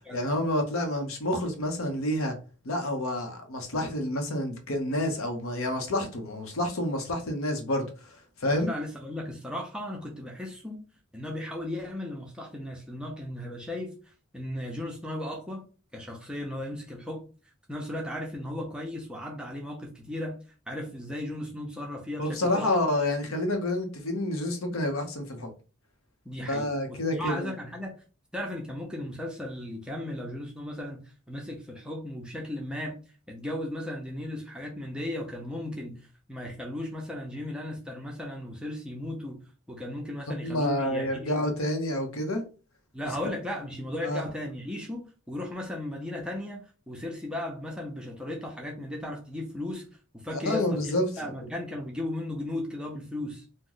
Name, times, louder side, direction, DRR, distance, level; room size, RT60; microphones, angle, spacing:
voice 1, 0.1-2.4 2.6-7.9 8.4-8.7 22.2-25.5 26.5-27.5 40.4-42.4 44.0-44.2 50.3-51.1, left 1 dB, 75° left, 0.8 m, -28 dB
voice 2, 8.5-10.8 11.1-13.9 14.3-15.6 15.9-17.2 17.7-20.4 20.7-22.8 26.2-27.9 28.3-33.0 33.3-36.0 36.3-39.4 39.7-41.5 42.9-49.8 50.2-53.4, left 1 dB, 5° right, 0.6 m, -36 dB
3.0 x 2.1 x 3.8 m
head